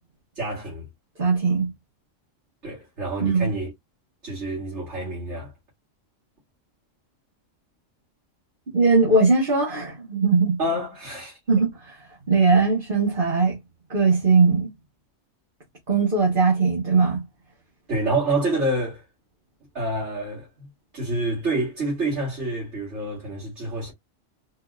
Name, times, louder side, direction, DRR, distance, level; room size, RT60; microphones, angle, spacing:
voice 1, 0.4-0.9 2.6-3.7 4.2-5.5 10.6-11.4 17.9-19.0 19.7-20.7 20.9-23.9, right 2 dB, 60° right, 2.6 m, -27 dB
voice 2, 1.2-1.7 3.2-3.5 8.7-10.6 11.5-13.6 13.9-14.7 15.9-17.2, right 4 dB, 40° right, 1.6 m, -20 dB
4.5 x 2.9 x 2.4 m
omnidirectional pair, 1.3 m